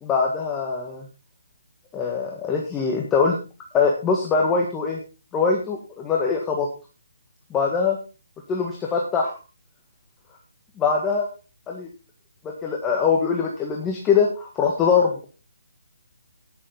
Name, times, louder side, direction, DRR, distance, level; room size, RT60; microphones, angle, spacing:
voice 1, 0.0-1.1 1.9-3.4 3.7-5.0 5.3-6.7 7.5-8.0 8.5-9.3 10.8-11.3 11.7-11.9 12.6-15.3, left 5 dB, 15° left, 0 dB, 1.6 m, -22 dB
10.0 x 10.0 x 3.9 m, 0.33 s
hypercardioid pair, 155°, 0 cm